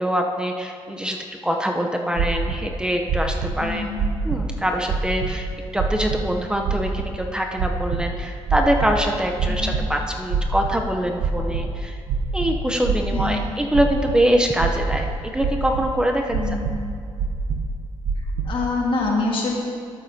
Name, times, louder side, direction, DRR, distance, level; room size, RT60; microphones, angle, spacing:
voice 1, 0.0-3.8 4.2-5.5 5.7-12.0 12.3-16.4, equal, 10° right, 2 dB, 0.7 m, -24 dB
sound 1, 2.1-2.6 3.1-3.5 4.0-4.5 4.9-5.3 5.8-6.2 6.6-7.0 7.6-8.0 8.5-9.0 9.4-9.8 10.3-10.8 11.2-11.6 12.1-13.3 13.7-14.2 14.6-15.1 15.4-15.9 16.3-16.7 17.2-17.7 18.0-18.5, right 6 dB, 90° right, 0.7 m, -24 dB
voice 2, 3.6-4.0 9.5-9.8 13.1-13.5 16.3-16.8 18.2-19.6, left 3 dB, 55° left, -1 dB, 1.7 m, -26 dB
13.0 x 7.3 x 2.8 m, 2.4 s
cardioid pair, 80°, 10 cm